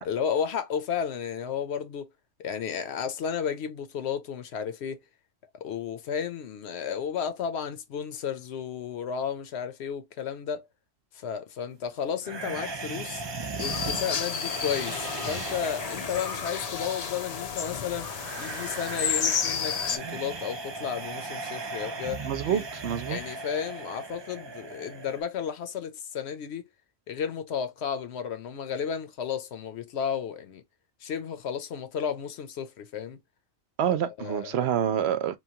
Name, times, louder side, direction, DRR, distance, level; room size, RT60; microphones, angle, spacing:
voice 1, 0.0-2.1 2.4-5.0 5.5-10.7 11.1-13.2 13.6-18.1 18.4-22.7 23.1-26.6 27.1-30.6 31.0-33.2 34.2-34.7, left 7 dB, 70° left, 0.9 m, -33 dB
sound 1, 12.2-25.2, right 3 dB, 35° right, 0.4 m, -38 dB
sound 2, 13.6-20.0, left 6 dB, 50° left, 0.5 m, -31 dB
voice 2, 22.2-23.2 33.8-35.4, right 9 dB, 70° right, 0.8 m, -27 dB
3.1 x 2.3 x 2.7 m
omnidirectional pair, 1.2 m